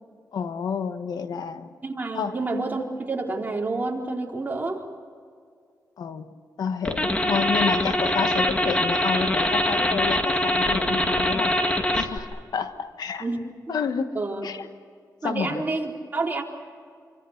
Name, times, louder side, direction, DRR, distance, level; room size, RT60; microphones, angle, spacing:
voice 1, 0.3-1.7 2.1-2.4 6.0-6.3 6.6-13.3 13.7-14.1 14.4-14.7 15.2-15.6, left 6 dB, 75° left, 9 dB, 1.4 m, -29 dB
voice 2, 1.8-4.8 7.1-7.2 13.2-13.4 14.1-14.4 15.2-16.4, right 3 dB, 25° right, 0 dB, 4.0 m, -29 dB
sound 1, 6.8-12.2, left 1 dB, 15° left, 2.3 m, -23 dB
28.0 x 25.5 x 6.7 m, 2.2 s
cardioid pair, 100°, 7 cm